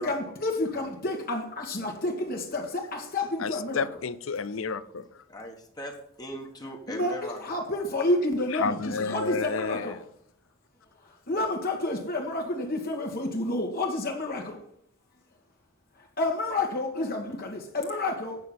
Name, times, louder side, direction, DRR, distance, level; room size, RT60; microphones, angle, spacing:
voice 1, 0.0-3.9 6.9-10.0 11.3-14.6 16.2-18.4, left 2 dB, 50° left, 1.7 m, -29 dB
voice 2, 3.4-5.0 8.5-9.9, left 5 dB, 80° left, 0.6 m, -31 dB
voice 3, 5.3-7.4 7.7-7.8, left 1 dB, 20° left, 1.4 m, -39 dB
8.9 x 5.7 x 7.5 m
head